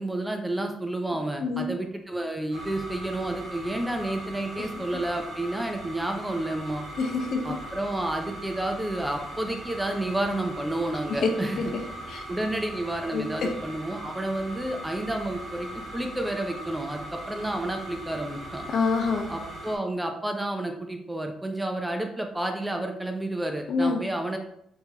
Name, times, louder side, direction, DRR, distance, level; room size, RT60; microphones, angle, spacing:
voice 1, 0.0-6.8 7.4-11.7 12.3-18.6 19.3-24.4, right 1 dB, 10° right, 4 dB, 0.6 m, -30 dB
sound 1, 2.5-19.8, right 1 dB, 50° right, 1.6 m, -40 dB
voice 2, 7.0-7.4 11.2-11.3 12.1-12.2 13.1-13.5 18.7-19.3 23.7-24.0, left 4 dB, 65° left, 3 dB, 0.8 m, -26 dB
5.6 x 2.9 x 2.9 m, 0.75 s
cardioid pair, 90°, 0 cm